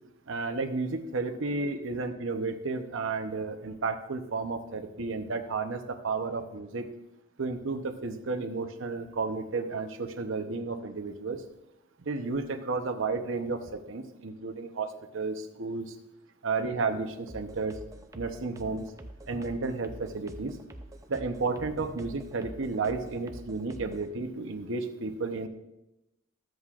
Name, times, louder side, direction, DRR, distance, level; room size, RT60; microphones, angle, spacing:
voice 1, 0.3-6.9 7.4-11.4 12.0-15.9 16.4-17.7 18.1-18.9 19.3-20.5 21.1-25.5, right 3 dB, 70° right, 6 dB, 0.8 m, -32 dB
sound 1, 17.3-24.1, right 1 dB, 15° right, 0.5 m, -46 dB
13.0 x 7.8 x 2.4 m, 0.91 s
head